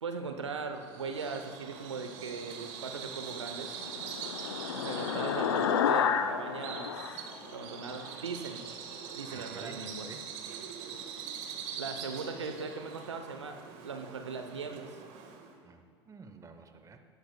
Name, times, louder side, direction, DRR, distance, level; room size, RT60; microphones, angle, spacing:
voice 1, 0.0-3.7 4.7-7.2 7.5-8.7 9.1-10.1 11.8-14.9, right 4 dB, 85° right, 6 dB, 0.8 m, -39 dB
Bird vocalization bird call bird song, 0.8-15.6, right 7 dB, 55° right, 1.5 m, -43 dB
sound 1, 3.3-8.1, left 8 dB, 75° left, 0.6 m, -31 dB
voice 2, 9.3-10.3 10.8-11.0 15.6-17.0, right 5 dB, 20° right, 7 dB, 0.9 m, -50 dB
18.0 x 12.0 x 2.3 m, 2.2 s
hypercardioid pair, 80°, 14 cm